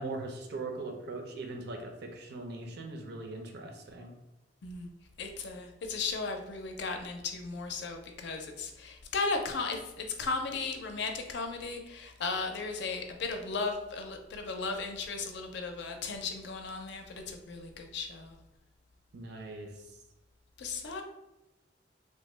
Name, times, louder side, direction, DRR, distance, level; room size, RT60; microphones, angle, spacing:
voice 1, 0.0-4.1 19.1-19.9, right 2 dB, 65° right, 3 dB, 0.5 m, -40 dB
voice 2, 5.2-18.4 20.6-21.0, left 4 dB, 70° left, 4 dB, 0.5 m, -36 dB
3.3 x 2.1 x 3.2 m, 0.96 s
head